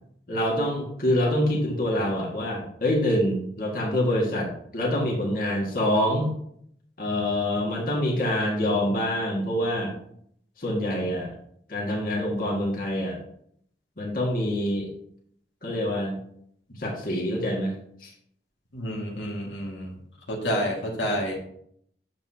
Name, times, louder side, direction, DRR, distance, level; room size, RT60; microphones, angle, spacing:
voice 1, 0.3-6.3 7.0-9.9 10.6-11.3 11.7-13.2 14.0-14.9 15.6-16.2 16.8-17.7 18.0-18.1, left 1 dB, 50° left, -2 dB, 1.9 m, -26 dB
voice 2, 18.7-19.9 20.3-21.4, equal, 85° left, -2 dB, 2.1 m, -29 dB
8.8 x 7.3 x 2.9 m, 0.68 s
head